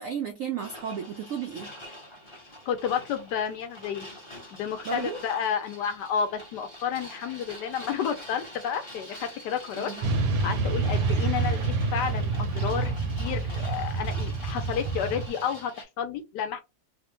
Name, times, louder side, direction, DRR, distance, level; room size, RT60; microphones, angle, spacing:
voice 1, 0.0-1.7 4.8-5.2 9.8-10.1, right 7 dB, 85° right, 0.7 m, -33 dB
sound 1, 0.6-15.8, left 1 dB, 25° left, 0.7 m, -45 dB
voice 2, 2.7-4.1 4.5-9.9 10.2-16.6, left 7 dB, 75° left, 1.2 m, -31 dB
Motorcycle / Traffic noise roadway noise, 10.0-15.3, right 3 dB, 70° right, 1.1 m, -27 dB
3.3 x 2.1 x 2.9 m
omnidirectional pair, 1.9 m